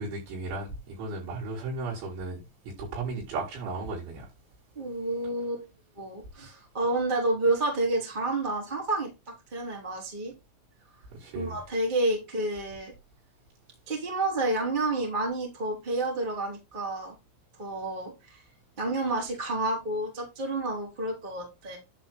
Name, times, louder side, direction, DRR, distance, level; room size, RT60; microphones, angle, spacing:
voice 1, 0.0-2.4 2.8-4.3 11.2-11.6, right 3 dB, 65° right, 7.2 m, -35 dB
voice 2, 4.7-5.7 6.0-9.1 9.5-10.3 11.3-12.9 13.9-17.2 17.6-18.4 18.8-21.8, right 2 dB, 15° right, 2.3 m, -29 dB
11.0 x 4.4 x 4.5 m
omnidirectional pair, 5.9 m